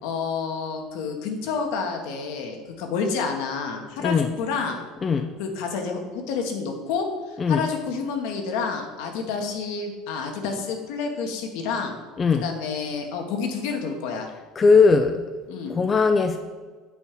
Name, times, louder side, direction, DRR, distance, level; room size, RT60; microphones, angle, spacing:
voice 1, 0.0-4.9 5.4-12.0 12.4-14.3 15.5-15.7, left 5 dB, 70° left, 3 dB, 1.3 m, -29 dB
voice 2, 4.0-4.3 5.0-5.3 7.4-7.7 12.2-12.5 14.6-15.2 15.7-16.4, left 4 dB, 30° left, 6 dB, 0.5 m, -19 dB
7.0 x 4.4 x 6.7 m, 1.4 s
hypercardioid pair, 75°, 0 cm